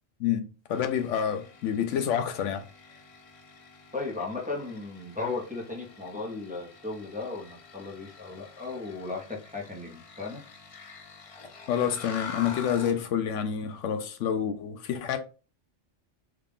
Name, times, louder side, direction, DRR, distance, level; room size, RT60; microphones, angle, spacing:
voice 1, 0.2-2.6 11.7-15.2, left 8 dB, 80° left, 0.9 m, -28 dB
sound 1, 0.7-13.0, left 5 dB, 55° left, 0.3 m, -47 dB
voice 2, 3.9-10.4, left 3 dB, 10° right, 0.7 m, -36 dB
3.5 x 2.3 x 3.5 m
omnidirectional pair, 1.3 m